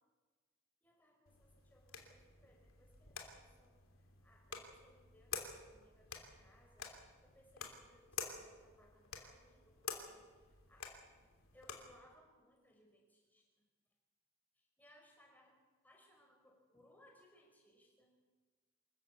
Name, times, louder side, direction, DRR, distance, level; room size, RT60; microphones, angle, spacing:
voice 1, 0.8-3.8 4.2-6.9 7.2-10.9 11.5-13.4 14.6-15.6 15.8-18.1, left 1 dB, 10° left, 0 dB, 5.1 m, -67 dB
sound 1, 1.3-12.0, left 6 dB, 85° left, 3.1 m, -50 dB
26.5 x 14.5 x 8.4 m, 1.3 s
head